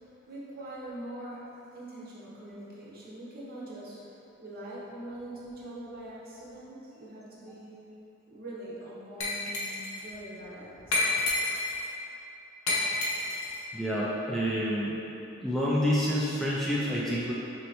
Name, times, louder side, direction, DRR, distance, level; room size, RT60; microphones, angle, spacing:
voice 1, 0.3-1.4 1.7-4.0 4.4-7.8 8.3-11.0, right 1 dB, 45° right, -7 dB, 0.8 m, -43 dB
Glass, 9.2-10.0 10.9-11.9 12.7-13.6, left 2 dB, 75° left, 0.7 m, -29 dB
voice 2, 13.7-14.9 15.4-17.3, equal, ahead, -8 dB, 0.3 m, -28 dB
4.3 x 3.2 x 2.8 m, 3.0 s
head